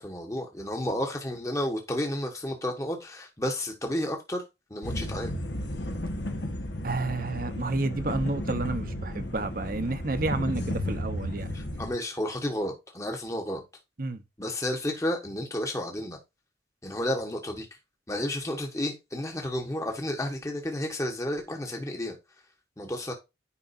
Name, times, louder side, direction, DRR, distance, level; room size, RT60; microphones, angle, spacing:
voice 1, 0.0-4.4 4.7-5.3 11.5-13.6 14.4-16.2 16.8-17.7 18.1-22.2 22.8-23.1, left 1 dB, 15° left, 1.3 m, -31 dB
sound 1, 4.8-11.9, left 1 dB, 70° left, 1.4 m, -33 dB
voice 2, 6.8-11.7 14.0-14.2, right 2 dB, 50° right, 1.0 m, -30 dB
9.8 x 5.3 x 2.6 m
head